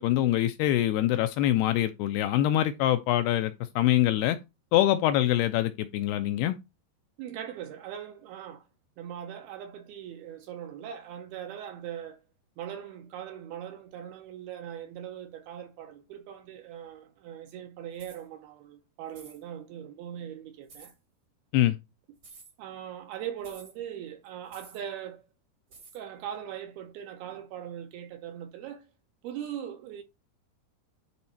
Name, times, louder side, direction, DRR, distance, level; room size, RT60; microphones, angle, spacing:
voice 1, 0.0-4.4 4.7-6.6 21.5-21.8, left 13 dB, 80° left, 2.4 m, -24 dB
voice 2, 7.2-8.7 9.0-12.2 12.6-20.9 22.6-25.3 25.9-28.9 29.2-30.0, right 10 dB, 80° right, 2.3 m, -40 dB
sound 1, 17.9-18.2 19.1-19.4 20.7-20.9 22.2-22.5 23.4-23.7 24.5-24.8 25.7-26.0, right 4 dB, 50° right, 1.0 m, -51 dB
10.5 x 3.5 x 4.2 m
omnidirectional pair, 5.0 m